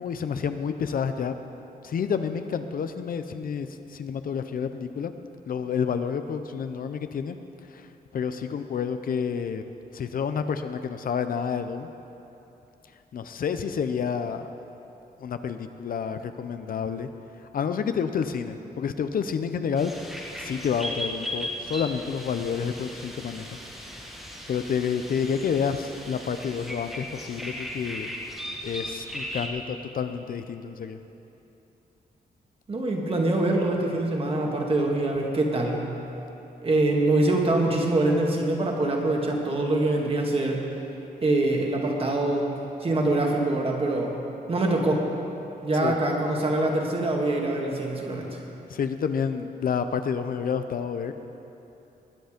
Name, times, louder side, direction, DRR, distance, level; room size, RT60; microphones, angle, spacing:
voice 1, 0.0-1.4 1.8-5.1 5.5-7.4 7.7-7.9 8.1-9.6 9.9-11.9 13.1-14.5 15.2-17.1 17.5-19.9 20.4-23.6 23.9-24.1 24.5-28.1 28.6-31.0 45.8-45.9 48.7-51.1, left 6 dB, 65° left, 9 dB, 0.6 m, -29 dB
sound 1, 19.8-29.5, equal, ahead, 1.6 m, -37 dB
voice 2, 32.7-35.8 36.6-40.6 41.2-42.5 42.8-44.1 44.5-45.0 45.6-48.4, right 2 dB, 35° right, 0 dB, 1.9 m, -24 dB
20.5 x 8.1 x 5.1 m, 3.0 s
wide cardioid pair, 130°, 16 cm